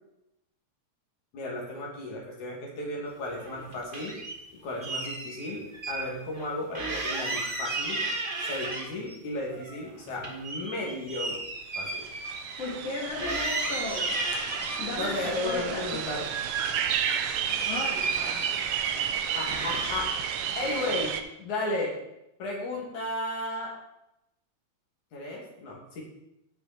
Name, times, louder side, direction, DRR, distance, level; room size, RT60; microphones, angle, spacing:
voice 1, 1.3-4.1 4.6-8.0 8.5-11.4 11.8-12.1 15.0-16.3 19.3-20.1 20.6-21.1 21.4-21.9 22.4-23.7 25.1-26.0, left 1 dB, 80° left, -2 dB, 3.9 m, -34 dB
sound 1, 3.3-4.4 4.8-6.0 6.3-6.5 6.7-9.2 9.5-12.9 13.2-14.9 15.4-16.3 16.6-19.1 19.5-20.1, right 3 dB, 35° right, 0.8 m, -34 dB
sound 2, 11.6-11.7 11.8-21.2, right 8 dB, 70° right, 1.5 m, -32 dB
voice 2, 12.6-14.2 14.8-15.9 17.7-18.4, left 3 dB, 60° left, -2 dB, 2.8 m, -35 dB
15.0 x 6.2 x 4.4 m, 0.86 s
omnidirectional pair, 3.3 m